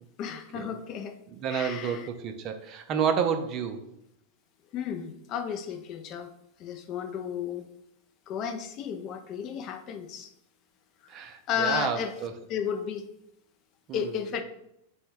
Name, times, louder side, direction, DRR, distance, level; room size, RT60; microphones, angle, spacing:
voice 1, 0.2-1.2 1.5-2.1 4.7-6.3 6.6-7.7 8.3-10.3 11.5-12.1 12.5-13.1 13.9-14.4, left 8 dB, 35° left, 7 dB, 0.4 m, -33 dB
voice 2, 1.4-3.8 11.1-12.3 13.9-14.1, right 7 dB, 35° right, 7 dB, 0.4 m, -30 dB
3.5 x 2.1 x 4.3 m, 0.78 s
figure-of-eight pair, 90°, 0 cm